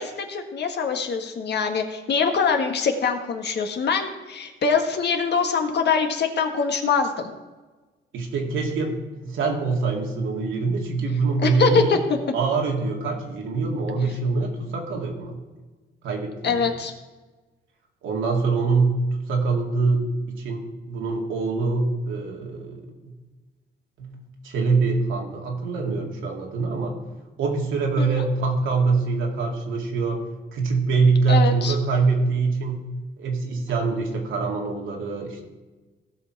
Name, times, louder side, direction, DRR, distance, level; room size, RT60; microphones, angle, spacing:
voice 1, 0.0-7.3 11.4-12.0 16.4-16.9 28.0-28.2 31.3-31.7, left 5 dB, 60° left, 4 dB, 1.6 m, -23 dB
voice 2, 8.1-9.0 9.2-11.9 12.3-15.4 16.0-16.6 18.0-20.6 20.9-22.8 24.0-24.2 24.4-26.9 27.4-30.2 30.5-32.8 33.2-35.5, right 4 dB, 80° right, 0 dB, 2.3 m, -24 dB
16.5 x 5.9 x 4.7 m, 1.2 s
cardioid pair, 90°, 20 cm